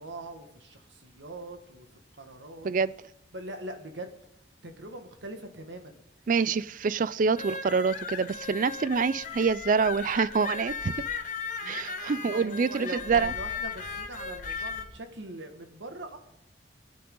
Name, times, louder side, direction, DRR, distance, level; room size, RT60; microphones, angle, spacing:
voice 1, 0.0-1.9 2.2-2.7 3.3-4.2 4.6-6.0 6.4-6.6 11.6-16.2, right 1 dB, 90° right, 1.8 m, -42 dB
voice 2, 6.3-10.9 11.7-13.3, right 5 dB, 45° right, 0.4 m, -26 dB
sound 1, 7.4-14.8, left 5 dB, 45° left, 1.3 m, -36 dB
20.5 x 9.5 x 3.8 m
head